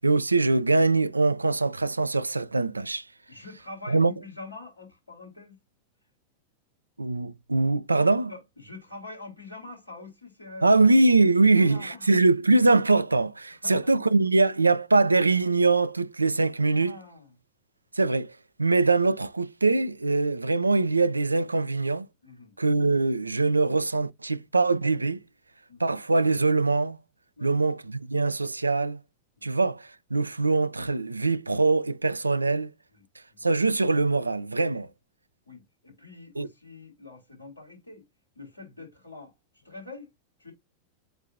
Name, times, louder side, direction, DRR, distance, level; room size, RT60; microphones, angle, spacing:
voice 1, 0.0-3.0 3.9-4.1 7.0-8.3 10.6-16.9 18.0-18.3 18.6-22.1 22.6-25.2 25.8-27.0 27.4-27.8 28.1-29.0 29.4-32.7 33.4-34.9 36.4-36.5, right 3 dB, 80° right, 0.4 m, -23 dB
voice 2, 3.3-5.6 8.3-11.1 11.5-12.1 13.5-14.1 16.6-17.3 22.2-22.5 25.7-25.8 27.4-27.6 29.4-29.5 32.9-33.0 33.3-33.4 35.4-38.0 38.3-39.3 39.6-40.1 40.4-40.5, left 2 dB, 80° left, 3.4 m, -45 dB
7.8 x 2.7 x 2.5 m
figure-of-eight pair, 90°, 0 cm